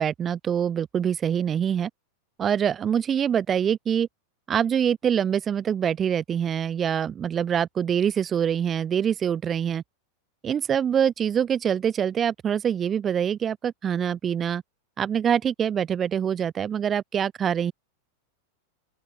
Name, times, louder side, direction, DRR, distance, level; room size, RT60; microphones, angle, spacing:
voice 1, 0.0-1.9 2.4-4.1 4.5-9.8 10.4-14.6 15.0-17.7, right 8 dB, 25° right, 3.1 m, -25 dB
open air
figure-of-eight pair, 90°, 0 cm